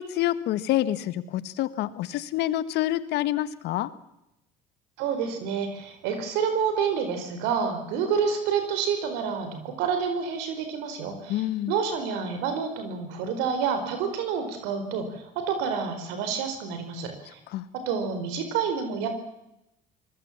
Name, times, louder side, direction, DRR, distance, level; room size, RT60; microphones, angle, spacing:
voice 1, 0.0-3.9 11.3-11.7 17.5-17.6, left 14 dB, 70° left, 14 dB, 1.6 m, -27 dB
voice 2, 5.0-17.4 17.7-19.1, right 6 dB, 80° right, 7 dB, 4.5 m, -28 dB
24.5 x 20.0 x 7.4 m, 0.87 s
supercardioid pair, 75°, 18 cm